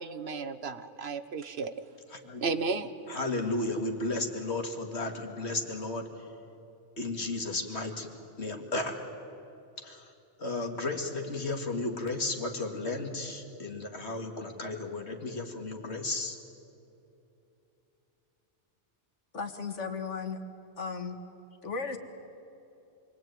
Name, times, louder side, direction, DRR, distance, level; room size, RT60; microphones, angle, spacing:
voice 1, 0.0-1.8 2.4-2.9, right 4 dB, 60° right, 11 dB, 1.4 m, -33 dB
voice 2, 3.1-6.1 7.0-8.1 8.4-9.0 9.8-10.1 10.4-16.4, left 2 dB, 65° left, 4 dB, 2.6 m, -34 dB
voice 3, 19.3-20.4 20.8-21.2 21.6-22.0, left 5 dB, 80° left, 6 dB, 2.2 m, -35 dB
27.5 x 23.0 x 9.3 m, 2.9 s
omnidirectional pair, 1.2 m